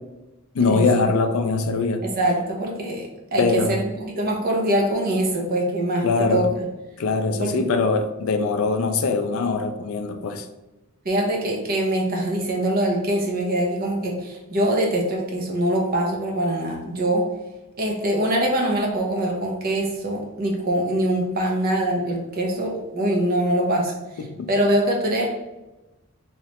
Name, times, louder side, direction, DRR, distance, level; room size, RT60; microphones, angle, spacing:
voice 1, 0.5-2.0 3.4-3.8 6.0-6.5 7.0-10.5 24.2-24.5, left 4 dB, 65° left, 7 dB, 0.4 m, -22 dB
voice 2, 2.0-6.6 7.3-7.6 11.0-17.3 17.8-25.3, right 1 dB, 40° right, 0 dB, 0.7 m, -23 dB
3.1 x 2.9 x 2.9 m, 1.0 s
head